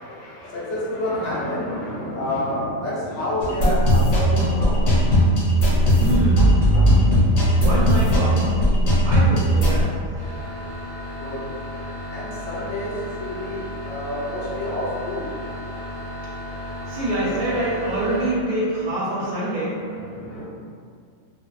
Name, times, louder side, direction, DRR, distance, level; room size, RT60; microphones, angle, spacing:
voice 1, 0.0-5.4 11.2-11.4 12.1-17.0 19.3-20.5, left 1 dB, 65° left, -8 dB, 1.0 m, -30 dB
sound 1, 3.4-9.8, equal, 80° left, 1.3 m, -17 dB
voice 2, 6.0-6.5 7.5-8.5 9.0-9.9 16.9-19.8, right 1 dB, 45° right, -7 dB, 0.6 m, -25 dB
sound 2, 10.1-18.3, left 1 dB, 40° left, 1.1 m, -34 dB
2.7 x 2.0 x 2.3 m, 2.2 s
omnidirectional pair, 1.4 m